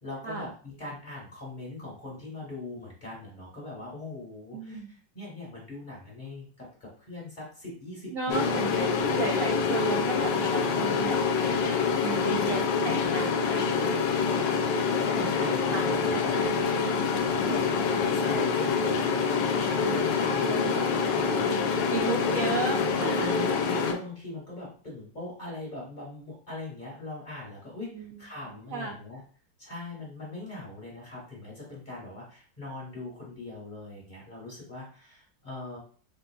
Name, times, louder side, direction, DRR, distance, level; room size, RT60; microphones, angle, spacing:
voice 1, 0.0-8.9 10.6-11.2 12.1-12.5 14.1-14.7 15.0-16.4 16.9-22.4 23.1-29.2 29.6-35.8, left 2 dB, 30° left, -4 dB, 1.3 m, -41 dB
voice 2, 4.5-4.9 8.1-14.5 15.1-17.4 20.4-21.4 21.9-23.3 27.9-28.2 28.7-29.0, right 4 dB, 70° right, 0 dB, 0.7 m, -35 dB
sound 1, 8.3-23.9, left 5 dB, 75° left, 1.2 m, -26 dB
3.8 x 3.6 x 2.3 m, 0.43 s
omnidirectional pair, 2.0 m